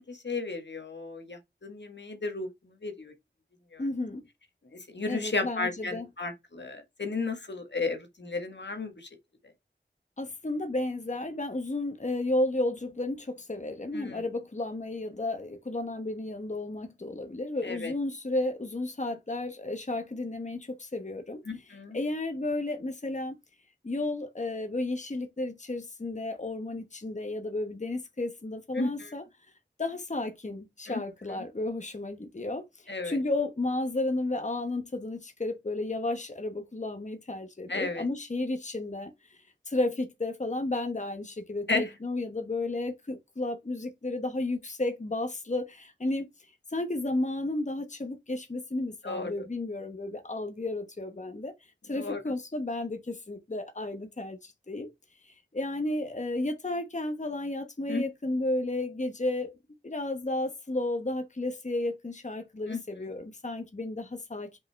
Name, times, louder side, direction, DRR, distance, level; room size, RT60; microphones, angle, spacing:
voice 1, 0.0-2.5 2.8-3.1 3.7-3.8 4.9-8.9 13.9-14.2 17.6-17.9 21.5-22.0 28.7-29.1 30.9-31.0 32.9-33.2 37.7-38.1 41.7-41.9 49.0-49.3 51.9-52.2 57.9-58.0 62.7-62.8, left 3 dB, 80° left, 1.5 m, -33 dB
voice 2, 3.8-4.2 5.1-6.1 10.2-23.4 23.8-29.2 29.8-39.4 39.7-46.3 46.7-51.5 51.8-54.9 55.2-59.6 59.8-64.6, left 2 dB, 40° left, 1.1 m, -33 dB
5.6 x 5.5 x 3.4 m
wide cardioid pair, 50°, 18 cm